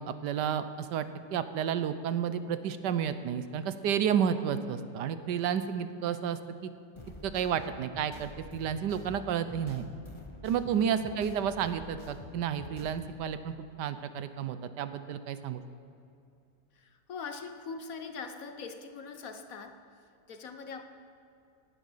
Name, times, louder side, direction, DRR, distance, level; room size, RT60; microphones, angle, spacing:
voice 1, 0.0-6.7 7.2-9.9 10.4-15.6, right 8 dB, 75° right, 11 dB, 1.3 m, -31 dB
sound 1, 7.0-13.2, left 2 dB, 20° left, 0.9 m, -48 dB
voice 2, 16.8-19.8 20.3-20.8, left 5 dB, 60° left, 8 dB, 1.2 m, -42 dB
17.5 x 11.5 x 5.6 m, 2.7 s
omnidirectional pair, 1.9 m